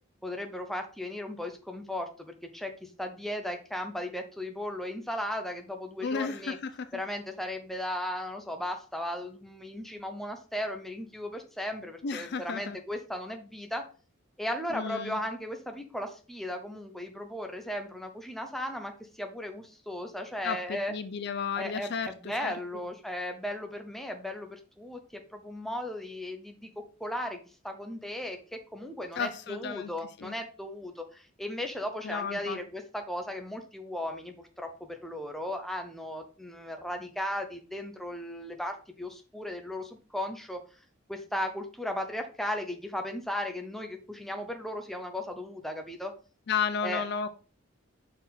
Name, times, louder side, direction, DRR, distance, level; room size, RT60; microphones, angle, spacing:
voice 1, 0.2-6.6 6.9-13.8 14.4-20.9 21.6-26.7 27.0-40.6 41.1-46.1 46.8-47.0, left 1 dB, ahead, 0.8 m, -36 dB
voice 2, 6.0-6.9 12.0-12.8 14.7-15.2 20.4-22.5 29.2-29.9 30.2-30.3 32.0-32.6 46.5-47.3, left 6 dB, 50° left, 0.4 m, -33 dB
6.1 x 4.3 x 4.1 m
head